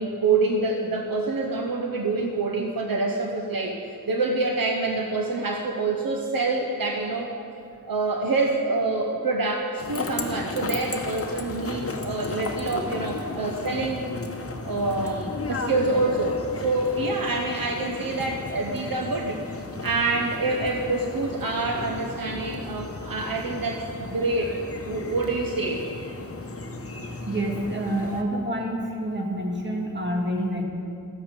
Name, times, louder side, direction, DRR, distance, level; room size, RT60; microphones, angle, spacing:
voice 1, 0.0-7.3 7.8-14.1 14.6-19.6 19.8-24.6 24.9-25.9, right 3 dB, 70° right, 2 dB, 0.9 m, -26 dB
sound 1, 9.8-28.2, left 3 dB, 40° left, 1.0 m, -35 dB
voice 2, 27.3-30.6, right 1 dB, 30° right, -1 dB, 1.9 m, -28 dB
13.5 x 8.8 x 5.2 m, 2.5 s
wide cardioid pair, 85°, 36 cm